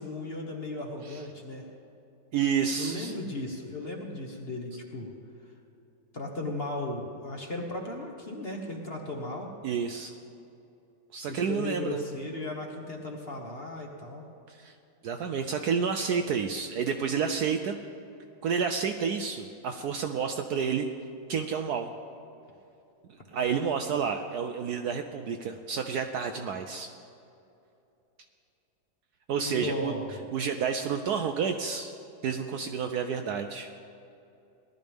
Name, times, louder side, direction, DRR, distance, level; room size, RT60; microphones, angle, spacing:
voice 1, 0.0-1.6 2.8-5.1 6.1-9.5 11.2-14.2 29.4-30.2, left 2 dB, 35° left, 1 dB, 1.2 m, -36 dB
voice 2, 2.3-3.1 9.6-10.2 11.1-12.0 14.5-14.8 15.0-17.8 18.4-20.9 21.3-21.9 23.3-26.9 29.3-29.9 30.3-31.9 32.2-33.7, right 6 dB, 70° right, 5 dB, 1.0 m, -30 dB
18.5 x 12.0 x 3.6 m, 2.7 s
omnidirectional pair, 2.1 m